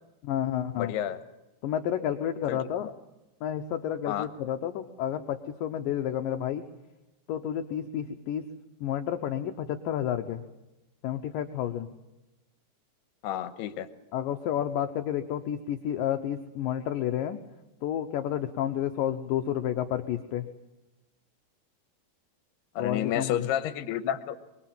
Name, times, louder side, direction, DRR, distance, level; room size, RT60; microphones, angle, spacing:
voice 1, 0.2-0.9 1.6-2.9 3.4-6.6 7.3-8.5 8.8-10.4 11.0-11.9 14.1-17.4 17.8-20.5 22.8-23.4, left 10 dB, 70° left, 6 dB, 2.3 m, -30 dB
voice 2, 0.7-1.2 2.5-2.9 4.1-4.3 13.2-13.9 22.8-24.4, left 11 dB, 85° left, 12 dB, 3.1 m, -30 dB
24.0 x 23.5 x 7.6 m, 1.0 s
omnidirectional pair, 4.6 m